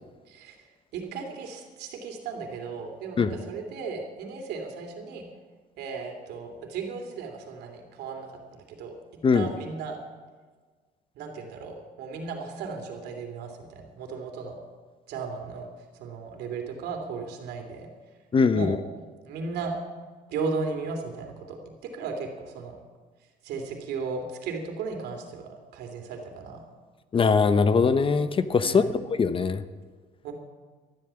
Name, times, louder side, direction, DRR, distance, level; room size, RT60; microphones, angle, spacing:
voice 1, 0.3-0.7 0.9-5.3 5.8-8.9 9.3-10.0 11.1-14.6 15.1-15.7 15.9-17.9 18.5-18.7 19.2-19.7 20.3-22.8 23.4-26.6 28.6-29.0 30.2-30.3, right 4 dB, 80° right, 3 dB, 3.0 m, -36 dB
voice 2, 18.3-18.8 27.1-29.6, left 5 dB, 30° left, 12 dB, 0.8 m, -22 dB
13.0 x 12.0 x 7.1 m, 1.5 s
cardioid pair, 110°, 17 cm